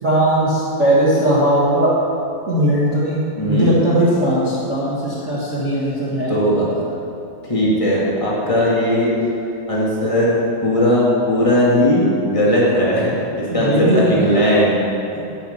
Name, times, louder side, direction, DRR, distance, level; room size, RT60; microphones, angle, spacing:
voice 1, 0.0-1.9 2.5-6.3 13.5-14.2, right 1 dB, 40° right, -8 dB, 1.0 m, -18 dB
voice 2, 3.4-3.7 6.3-6.8 7.5-9.1 9.7-10.3 10.6-14.8 15.1-15.2, equal, 15° left, -7 dB, 1.0 m, -17 dB
11.0 x 5.9 x 7.9 m, 2.8 s
omnidirectional pair, 4.4 m